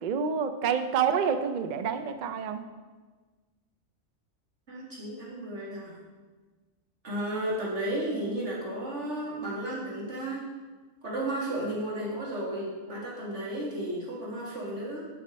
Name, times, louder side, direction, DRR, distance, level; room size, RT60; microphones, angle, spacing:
voice 1, 0.0-2.6, right 7 dB, 80° right, 9 dB, 0.4 m, -28 dB
voice 2, 4.7-5.9 7.0-10.5 11.0-15.1, right 1 dB, 55° right, -5 dB, 2.4 m, -33 dB
7.2 x 5.8 x 5.1 m, 1.3 s
omnidirectional pair, 1.4 m